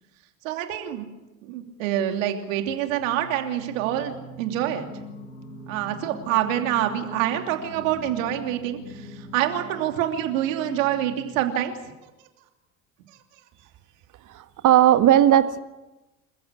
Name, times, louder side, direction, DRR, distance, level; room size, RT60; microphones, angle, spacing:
voice 1, 0.4-1.1 1.4-4.9 5.7-11.7, right 11 dB, 70° right, 5 dB, 3.0 m, -26 dB
Singing, 2.9-11.8, equal, 85° left, 6.6 m, -43 dB
voice 2, 14.3-15.6, right 11 dB, 50° right, 10 dB, 1.8 m, -17 dB
27.5 x 15.0 x 8.3 m, 1.0 s
hypercardioid pair, 70°, 40 cm